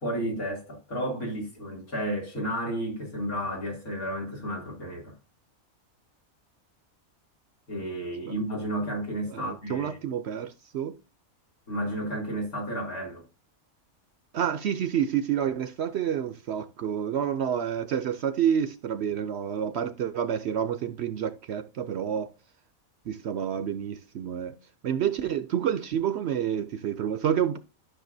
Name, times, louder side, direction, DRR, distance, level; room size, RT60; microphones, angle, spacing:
voice 1, 0.0-5.1 7.7-10.0 11.7-13.2, right 1 dB, 90° left, 3.3 m, -32 dB
voice 2, 9.3-11.0 14.3-22.3 23.1-24.6 24.8-27.6, right 9 dB, 65° right, 0.7 m, -29 dB
12.5 x 6.2 x 2.6 m
omnidirectional pair, 1.5 m